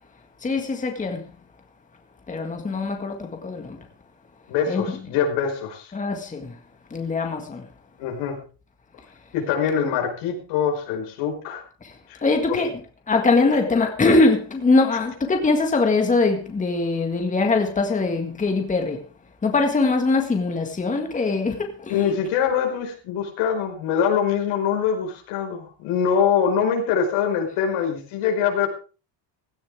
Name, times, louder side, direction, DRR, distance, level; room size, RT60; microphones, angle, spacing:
voice 1, 0.4-1.3 2.3-3.9 4.7-4.8 5.9-6.6 6.9-7.7 11.8-12.8 13.1-19.0 19.4-22.2, left 3 dB, 15° left, 1.8 m, -22 dB
voice 2, 4.5-5.9 8.0-8.4 9.3-11.6 12.1-12.2 12.5-12.6 21.9-28.7, left 7 dB, 80° left, 5.2 m, -23 dB
17.0 x 14.5 x 3.6 m
cardioid pair, 150°, 49 cm